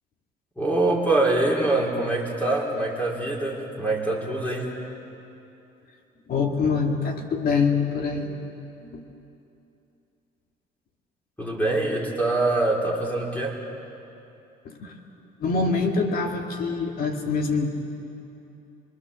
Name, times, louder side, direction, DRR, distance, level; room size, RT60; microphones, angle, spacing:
voice 1, 0.6-4.7 11.4-13.6, right 2 dB, 10° left, -2 dB, 4.1 m, -24 dB
voice 2, 6.3-8.4 8.8-9.0 14.6-15.0 15.4-17.7, left 4 dB, 60° left, 3 dB, 2.3 m, -25 dB
25.0 x 23.0 x 7.1 m, 2.8 s
cardioid pair, 110°, 17 cm